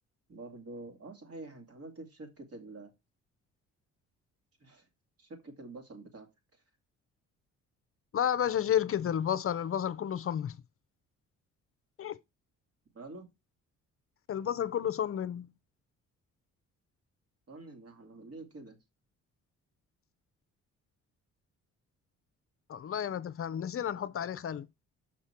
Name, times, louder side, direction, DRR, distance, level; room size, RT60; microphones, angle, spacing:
voice 1, 0.3-2.9 4.6-4.9 5.2-6.3 12.9-13.3 17.5-18.8, right 2 dB, 50° right, 2.5 m, -47 dB
voice 2, 8.1-10.6 12.0-12.2 14.3-15.5 22.7-24.7, left 9 dB, 45° left, 0.6 m, -31 dB
6.2 x 5.9 x 4.4 m
cardioid pair, 90°, 30 cm